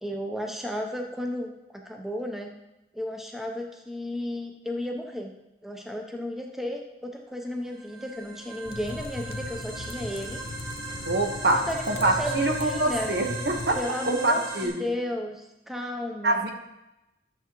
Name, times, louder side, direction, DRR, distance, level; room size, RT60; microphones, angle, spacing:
voice 1, 0.0-2.5 2.9-5.3 5.6-10.4 11.5-13.1 13.7-16.4, left 1 dB, ahead, 1 dB, 0.7 m, -34 dB
sound 1, 7.7-14.7, right 1 dB, 20° right, 2.9 m, -37 dB
sound 2, 8.6-13.8, left 2 dB, 55° left, 0.5 m, -39 dB
voice 2, 11.1-13.8 14.1-14.8 16.2-16.5, right 2 dB, 70° right, 4 dB, 1.1 m, -25 dB
11.5 x 6.8 x 3.0 m, 0.93 s
head